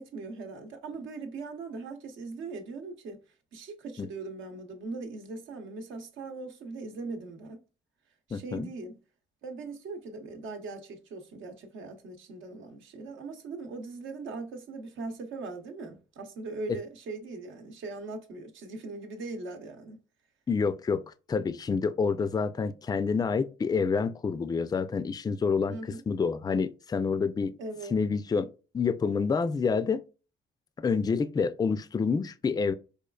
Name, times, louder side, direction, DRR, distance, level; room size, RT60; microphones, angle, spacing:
voice 1, 0.0-3.2 3.5-7.6 8.3-9.0 9.4-20.0 25.7-26.0 27.6-27.9, right 3 dB, 75° right, 0.9 m, -40 dB
voice 2, 8.3-8.7 16.7-16.8 20.5-21.0 21.3-25.8 26.1-27.5 27.9-28.5 28.7-30.0 30.8-32.7, left 5 dB, 20° left, 0.3 m, -28 dB
5.0 x 2.4 x 2.3 m
cardioid pair, 90°, 20 cm